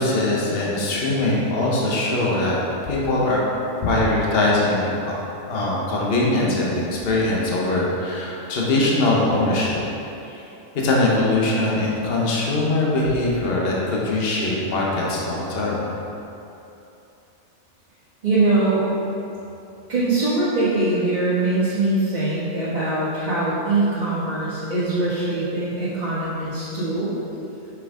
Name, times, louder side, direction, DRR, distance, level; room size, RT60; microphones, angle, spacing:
voice 1, 0.0-2.6 2.8-3.4 3.8-5.1 5.5-9.8 10.3-10.4 10.7-15.9, left 2 dB, 50° left, -4 dB, 1.2 m, -21 dB
voice 2, 18.2-18.8 19.9-27.1, right 2 dB, 30° right, -13 dB, 1.4 m, -22 dB
6.1 x 5.8 x 3.7 m, 2.9 s
omnidirectional pair, 1.4 m